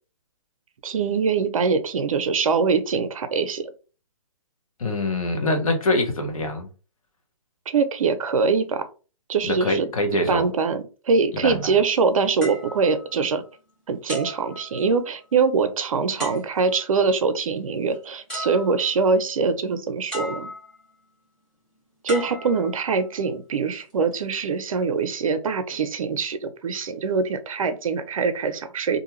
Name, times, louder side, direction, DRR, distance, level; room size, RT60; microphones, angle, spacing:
voice 1, 0.8-3.7 7.7-8.9 9.3-9.9 10.3-13.4 13.9-20.5 22.0-29.0, right 5 dB, 70° right, 0.6 m, -23 dB
voice 2, 4.8-6.7 9.4-10.5 11.4-11.8, left 2 dB, 75° left, 1.0 m, -24 dB
sound 1, 12.4-13.6 14.1-15.2 16.2-16.9 17.9-18.0 18.3-19.1 20.1-20.9 22.1-23.2 23.9-24.2, equal, 5° left, 0.9 m, -37 dB
2.6 x 2.3 x 3.0 m
hypercardioid pair, 160°, 18 cm